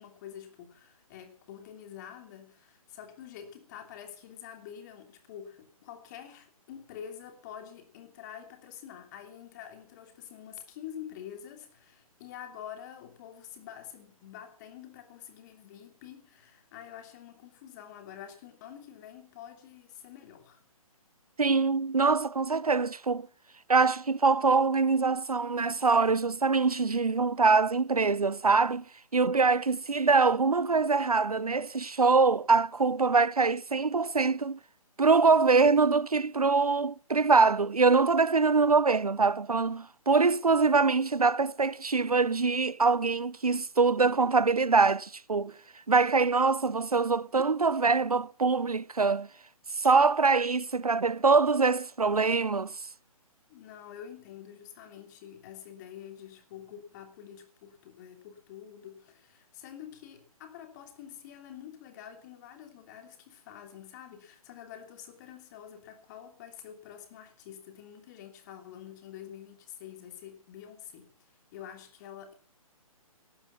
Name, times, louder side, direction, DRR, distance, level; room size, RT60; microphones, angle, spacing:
voice 1, 0.0-20.6 53.5-72.3, left 9 dB, 30° left, 3.0 m, -47 dB
voice 2, 21.4-23.3 23.7-28.8 29.1-34.6 35.0-45.5 45.9-49.3 49.8-52.8, right 4 dB, 80° right, 0.6 m, -24 dB
17.5 x 12.0 x 5.7 m
figure-of-eight pair, 135°, 19 cm